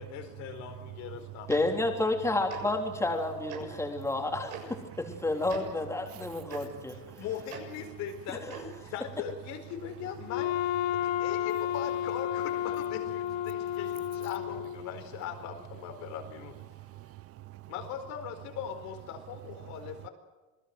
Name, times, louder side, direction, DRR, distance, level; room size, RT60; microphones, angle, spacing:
voice 1, 0.0-1.5 7.2-10.7 11.0-16.6 17.7-20.1, left 9 dB, 60° left, 4.5 m, -40 dB
voice 2, 1.5-7.0 8.5-8.6, left 2 dB, 10° left, 3.5 m, -30 dB
Tick-tock, 1.5-1.6 2.5-2.6 3.5-3.6 4.5-4.6 5.5-5.6 6.5-6.6 7.5-7.6 8.5-8.7, right 10 dB, 80° right, 7.3 m, -42 dB
voice 3, 6.0-7.2 10.9-11.2 16.7-17.7 19.6-19.9, right 17 dB, 45° right, 0.7 m, -48 dB
Wind instrument woodwind instrument, 10.3-15.0, left 12 dB, 85° left, 1.5 m, -32 dB
27.5 x 19.0 x 7.8 m
cardioid pair, 130°, 31 cm